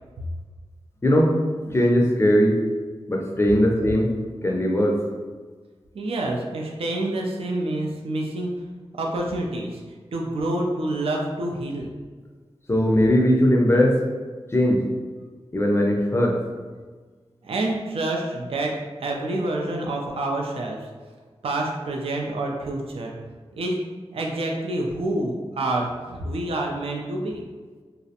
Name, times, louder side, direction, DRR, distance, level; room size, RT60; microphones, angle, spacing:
voice 1, 1.0-1.3 1.6-2.6 3.1-4.2 4.4-5.0 12.7-14.0 14.5-14.8 15.5-16.4, equal, 25° left, 0 dB, 0.4 m, -19 dB
voice 2, 5.9-8.5 8.9-9.8 10.1-11.9 17.4-20.8 21.4-23.1 23.5-23.8 24.1-27.5, right 1 dB, 65° right, 0 dB, 0.4 m, -27 dB
2.4 x 2.0 x 2.7 m, 1.4 s
wide cardioid pair, 65°, 10 cm